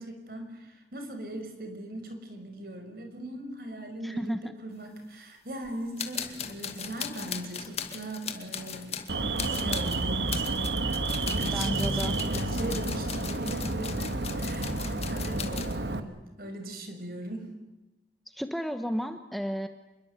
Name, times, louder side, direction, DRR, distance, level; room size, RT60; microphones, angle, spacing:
voice 1, 0.0-9.1 9.4-17.5, right 1 dB, 55° right, 6 dB, 5.7 m, -40 dB
voice 2, 4.0-4.5 11.5-12.2 18.3-19.7, equal, ahead, 8 dB, 1.1 m, -33 dB
sound 1, 5.6-5.7 6.0-15.8, left 7 dB, 35° left, 2.1 m, -38 dB
Alarm, 9.1-16.0, right 2 dB, 85° right, 1.8 m, -30 dB
27.5 x 22.0 x 8.2 m, 1.0 s
head